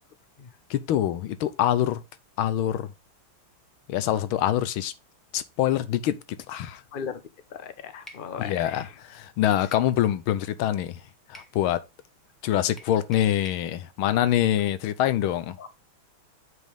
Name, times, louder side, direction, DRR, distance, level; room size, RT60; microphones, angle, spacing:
voice 1, 0.7-2.0 2.4-2.9 3.9-4.9 5.3-6.8 8.4-11.0 11.3-11.8 12.4-15.6, left 12 dB, 80° left, 1.5 m, -25 dB
voice 2, 7.5-8.9 15.6-15.8, left 7 dB, 55° left, 0.5 m, -37 dB
sound 1, 8.1-8.3 9.7-9.9 11.3-11.6 12.8-13.7, equal, ahead, 0.8 m, -48 dB
7.9 x 5.2 x 3.5 m
omnidirectional pair, 2.3 m